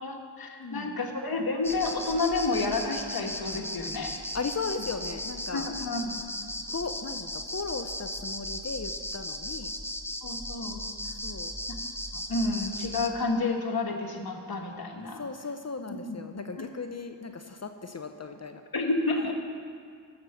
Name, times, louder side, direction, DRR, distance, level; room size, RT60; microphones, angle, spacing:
voice 1, 0.0-4.2 5.5-6.2 10.2-10.8 12.1-15.2 15.9-16.2 16.6-16.7 18.7-19.3, left 3 dB, 50° left, 3 dB, 1.6 m, -30 dB
voice 2, 0.6-1.0 4.3-5.7 6.7-9.7 11.2-11.5 15.2-18.6, left 4 dB, 35° left, 7 dB, 0.8 m, -36 dB
sound 1, 1.6-13.1, left 1 dB, 5° left, 0.9 m, -37 dB
14.5 x 6.6 x 5.7 m, 2.2 s
supercardioid pair, 40°, 46 cm